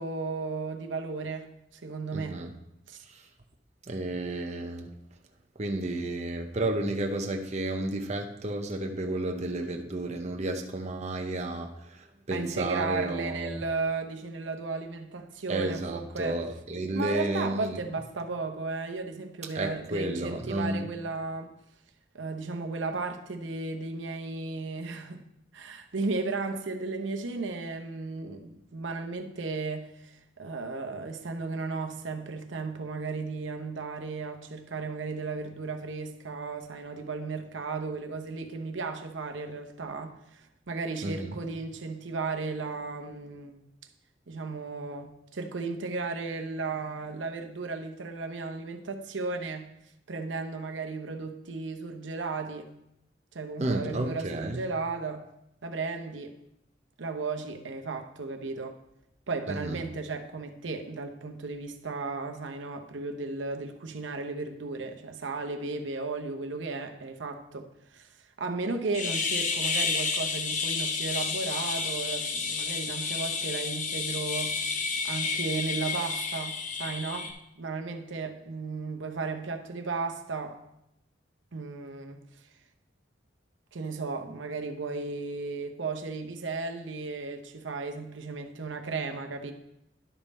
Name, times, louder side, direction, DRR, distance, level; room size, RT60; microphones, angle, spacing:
voice 1, 0.0-1.5 1.7-2.4 2.9-3.0 12.3-16.4 16.9-21.5 22.1-25.2 25.5-43.6 44.3-49.7 50.1-52.7 53.3-55.3 55.6-56.4 57.0-58.8 59.3-67.7 67.9-68.1 68.4-74.6 75.0-77.3 77.6-80.6 81.5-82.2 83.7-89.5, right 3 dB, 90° right, 0.8 m, -35 dB
voice 2, 2.1-2.5 3.1-3.2 3.9-4.9 5.6-13.6 15.5-17.8 19.5-20.9 41.0-41.4 53.6-54.6 59.5-59.8, right 1 dB, 35° right, 0.7 m, -32 dB
sound 1, 68.9-77.3, left 4 dB, 45° left, 0.7 m, -31 dB
11.0 x 5.4 x 4.1 m
head